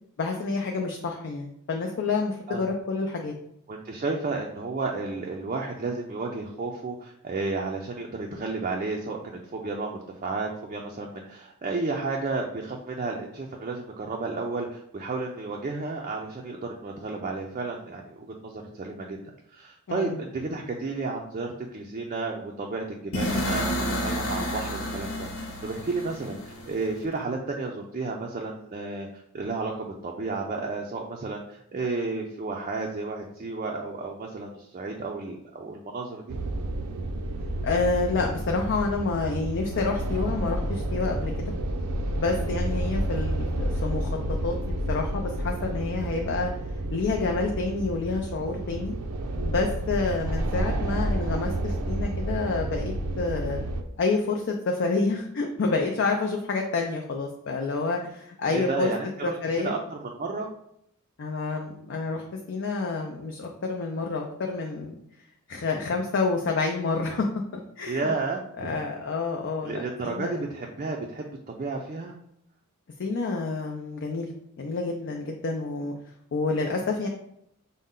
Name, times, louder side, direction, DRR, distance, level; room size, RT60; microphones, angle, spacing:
voice 1, 0.2-3.3 19.9-20.2 37.6-41.5 42.2-44.6 44.9-46.5 46.9-49.0 49.4-53.6 54.0-58.9 59.2-59.7 61.2-65.0 65.5-67.3 67.5-68.1 68.6-70.4 73.0-74.3 74.6-75.9 76.3-77.1, left 3 dB, 55° left, 2 dB, 0.5 m, -28 dB
voice 2, 3.7-19.2 19.5-29.1 29.3-36.4 58.5-60.5 67.9-68.8 69.6-72.1, right 3 dB, 35° right, 0 dB, 0.4 m, -32 dB
sound 1, 23.1-27.0, equal, 75° left, 0.8 m, -30 dB
sound 2, 36.3-53.8, right 1 dB, 90° right, 0.5 m, -30 dB
5.3 x 2.1 x 3.7 m, 0.73 s
head